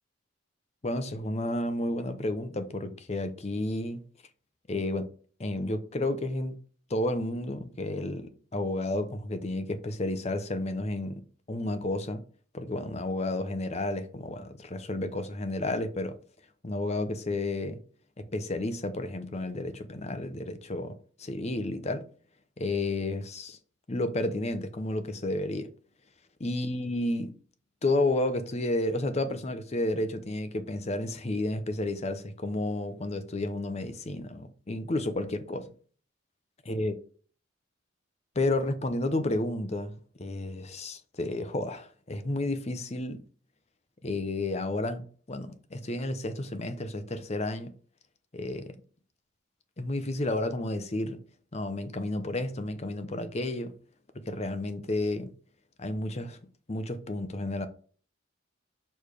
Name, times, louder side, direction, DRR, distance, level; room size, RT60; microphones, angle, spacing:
voice 1, 0.8-4.0 4.7-5.1 5.4-6.6 6.9-11.2 11.5-12.2 12.5-16.2 16.6-17.8 18.2-22.0 22.6-23.6 23.9-25.7 26.4-27.3 27.8-35.7 36.7-36.9 38.4-43.2 44.0-47.7 48.3-48.8 49.8-51.2 51.5-53.7 54.1-55.3 55.8-56.4 56.7-57.7, left 2 dB, 35° left, 0.7 m, -31 dB
6.6 x 3.3 x 5.1 m
head